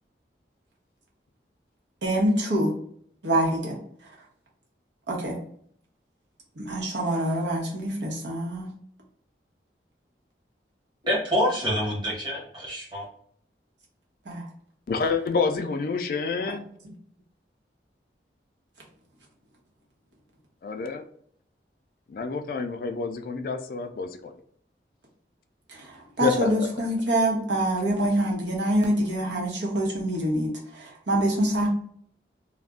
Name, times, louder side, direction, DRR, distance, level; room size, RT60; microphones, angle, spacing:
voice 1, 2.0-2.7 3.2-3.8 5.1-5.4 6.6-8.7 14.3-14.5 16.8-16.9 25.7-31.7, right 1 dB, 90° right, -2 dB, 1.0 m, -25 dB
voice 2, 11.0-13.0, equal, 25° right, -5 dB, 1.1 m, -26 dB
voice 3, 14.9-16.7 20.6-21.0 22.1-24.3 26.2-26.5, left 4 dB, 50° left, 6 dB, 0.3 m, -28 dB
2.4 x 2.1 x 3.4 m, 0.62 s
head